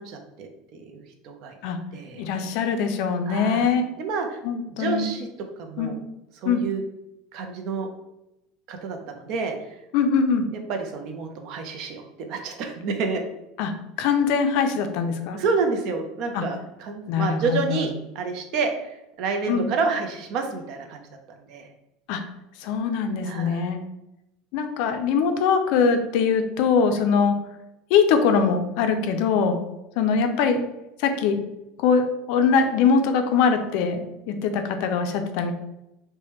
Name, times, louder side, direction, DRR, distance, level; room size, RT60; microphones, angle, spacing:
voice 1, 0.0-1.5 1.9-2.3 3.3-4.4 4.7-5.3 5.6-6.0 6.4-6.8 7.3-7.9 8.7-9.7 10.7-13.2 15.3-21.0 21.5-21.7 23.2-23.7 27.0-27.1, right 4 dB, 50° right, 5 dB, 0.5 m, -29 dB
voice 2, 2.2-3.8 4.4-5.1 5.8-6.0 6.4-6.6 9.9-10.5 13.6-13.7 14.0-15.4 16.3-16.4 17.1-17.9 19.5-19.7 22.1-22.2 22.6-23.8 24.5-27.4 27.9-29.6 30.0-30.7 31.0-31.4 31.8-35.5, left 6 dB, 60° left, 7 dB, 0.4 m, -22 dB
3.2 x 2.1 x 3.0 m, 0.91 s
supercardioid pair, 145°, 0 cm